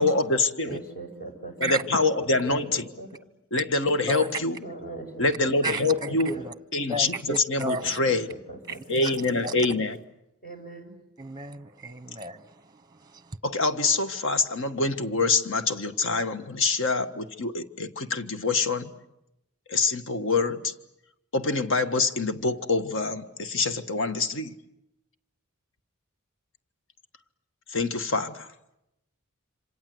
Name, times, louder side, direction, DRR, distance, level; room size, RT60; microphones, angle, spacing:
voice 1, 0.0-0.8 1.6-2.8 3.5-4.6 5.2-6.3 6.7-8.3 8.9-10.0 13.4-18.9 19.7-20.7 21.3-24.5 27.7-28.5, left 3 dB, 65° left, 1.6 m, -25 dB
voice 2, 0.6-2.0 2.4-3.1 4.6-6.5 7.8-9.6 10.4-11.0, right 3 dB, 45° left, 6.1 m, -41 dB
voice 3, 5.6-6.5 6.9-7.8 9.0-9.1 9.4-9.5 11.2-12.4, right 2 dB, 20° right, 0.9 m, -32 dB
27.5 x 26.5 x 7.9 m
head